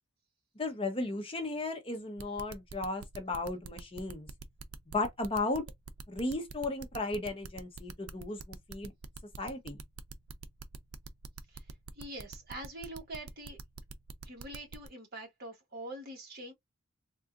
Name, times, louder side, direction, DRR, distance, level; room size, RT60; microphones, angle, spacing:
voice 1, 0.6-4.3 4.9-5.6 6.1-8.9 9.4-9.8, left 2 dB, 25° left, 0.6 m, -35 dB
sound 1, 2.2-14.9, right 5 dB, 80° right, 0.5 m, -46 dB
voice 2, 12.0-13.6 14.2-16.5, right 1 dB, 45° right, 1.3 m, -44 dB
3.7 x 2.3 x 2.4 m
head